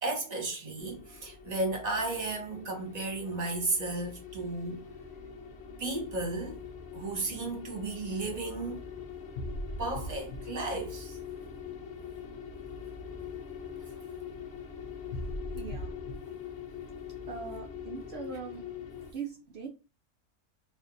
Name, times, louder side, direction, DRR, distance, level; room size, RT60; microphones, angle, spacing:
voice 1, 0.0-4.8 5.8-6.6 6.9-8.8 9.8-11.2, right 2 dB, 30° right, 1.1 m, -34 dB
sound 1, 0.8-19.1, left 4 dB, 55° left, 0.9 m, -42 dB
voice 2, 15.5-15.9 17.3-18.7 19.1-19.7, right 5 dB, 65° right, 0.6 m, -41 dB
4.4 x 2.5 x 2.6 m
omnidirectional pair, 1.6 m